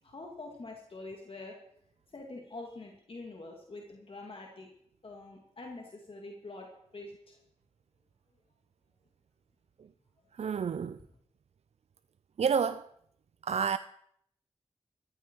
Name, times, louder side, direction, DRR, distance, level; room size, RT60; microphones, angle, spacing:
voice 1, 0.0-1.6 2.1-4.7 5.0-7.4, left 2 dB, 55° left, 2.3 m, -45 dB
voice 2, 10.3-11.0 12.4-12.9 13.4-13.8, right 6 dB, 70° right, 0.4 m, -29 dB
14.0 x 13.5 x 4.6 m
wide cardioid pair, 70°, 11 cm